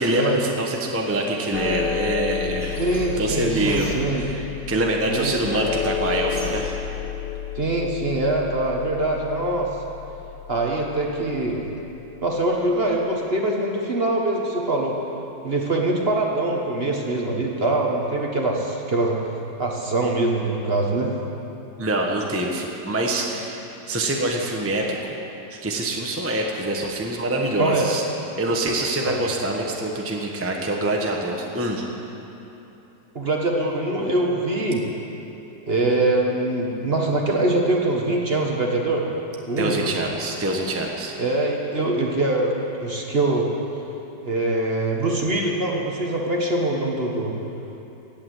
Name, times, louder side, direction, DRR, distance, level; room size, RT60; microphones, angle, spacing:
voice 1, 0.0-2.7 3.2-6.8 21.8-23.6 23.9-25.2 25.5-28.0 28.4-31.8 39.6-41.1, right 1 dB, 10° right, 0 dB, 1.0 m, -25 dB
sound 1, 1.5-11.9, left 8 dB, 85° left, 1.4 m, -31 dB
sound 2, 2.6-4.4 4.9-5.7 6.3-6.9, left 1 dB, 15° left, 2.0 m, -37 dB
voice 2, 2.8-4.2 5.1-5.4 7.5-9.7 10.5-11.6 12.2-15.0 15.4-19.2 19.6-21.1 27.6-27.9 29.1-29.2 33.1-34.9 35.7-39.0 39.5-39.8 41.2-42.5 42.8-43.5 44.2-47.4, right 2 dB, 35° right, 0 dB, 1.4 m, -23 dB
17.0 x 8.8 x 7.8 m, 3.0 s
omnidirectional pair, 1.9 m